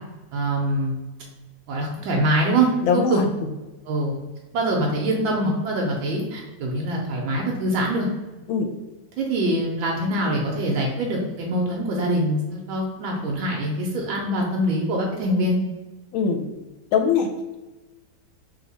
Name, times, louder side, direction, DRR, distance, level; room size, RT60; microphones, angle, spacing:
voice 1, 0.3-0.9 1.7-3.2 3.9-4.2 4.5-8.1 9.2-15.6, right 1 dB, 80° right, -1 dB, 1.4 m, -24 dB
voice 2, 2.8-3.5 8.5-8.7 16.1-16.4 16.9-17.3, left 6 dB, 85° left, 5 dB, 1.3 m, -22 dB
3.3 x 2.8 x 4.0 m, 1.1 s
omnidirectional pair, 2.1 m